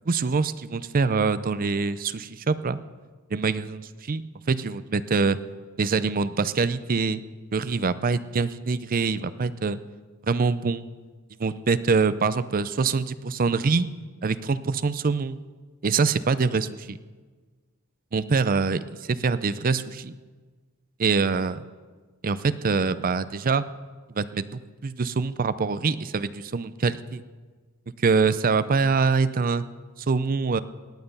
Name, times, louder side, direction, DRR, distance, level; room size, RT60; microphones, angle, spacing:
voice 1, 0.1-2.8 3.3-4.2 4.5-5.4 5.8-7.2 7.5-9.8 10.3-10.8 11.4-13.9 14.2-15.4 15.8-17.0 18.1-18.8 19.1-20.1 21.0-21.6 22.2-23.6 24.2-27.2 28.0-29.6 30.1-30.6, right 4 dB, 40° right, 15 dB, 0.5 m, -24 dB
18.5 x 9.1 x 5.4 m, 1.4 s
head